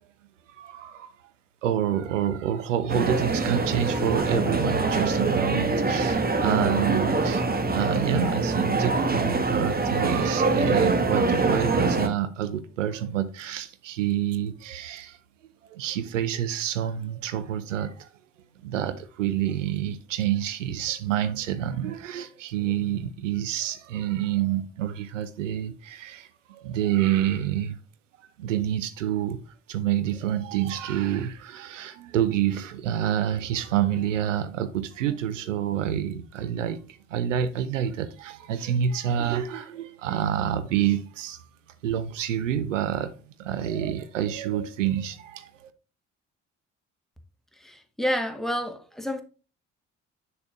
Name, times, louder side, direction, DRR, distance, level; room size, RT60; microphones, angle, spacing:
voice 1, 0.5-1.1 1.6-15.2 15.7-18.1 18.6-27.8 28.4-29.4 29.7-36.8 37.1-41.4 41.8-43.1 43.4-45.7, right 10 dB, 90° right, 0.5 m, -28 dB
sound 1, 2.9-12.1, right 3 dB, 25° right, 1.2 m, -24 dB
voice 2, 47.6-49.2, equal, ahead, 1.5 m, -29 dB
6.9 x 6.7 x 2.5 m
hypercardioid pair, 45°, 37 cm